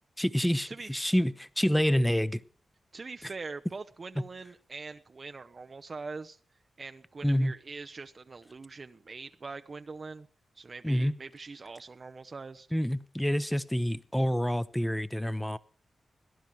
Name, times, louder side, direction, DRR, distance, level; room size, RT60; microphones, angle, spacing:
voice 1, 0.2-2.4 7.2-7.5 10.8-11.1 12.7-15.6, equal, 5° left, 16 dB, 0.9 m, -27 dB
voice 2, 2.9-6.4 6.8-10.3 10.5-12.7, right 4 dB, 50° right, 8 dB, 0.7 m, -43 dB
18.5 x 10.5 x 4.7 m, 0.40 s
cardioid pair, 60°, 0 cm